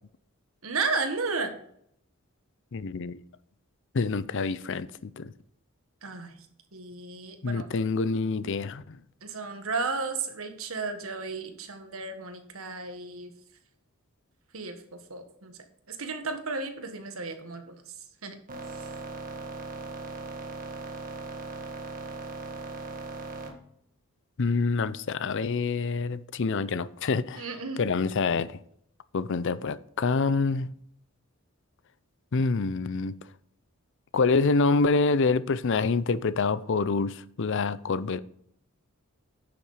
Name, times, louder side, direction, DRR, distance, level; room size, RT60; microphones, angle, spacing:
voice 1, 0.6-1.5 6.0-6.3 6.7-7.6 9.2-13.3 14.5-14.8 15.1-15.5 15.9-17.8 18.2-18.3 18.8-18.9 27.3-27.8, right 4 dB, 75° right, 1.7 m, -33 dB
voice 2, 2.7-3.2 3.9-5.3 7.4-9.0 24.4-27.5 27.8-28.6 29.1-30.7 32.3-33.2 34.1-38.2, left 4 dB, 60° left, 0.5 m, -26 dB
sound 1, 18.5-23.5, right 3 dB, 40° right, 1.8 m, -38 dB
10.0 x 7.1 x 5.0 m
head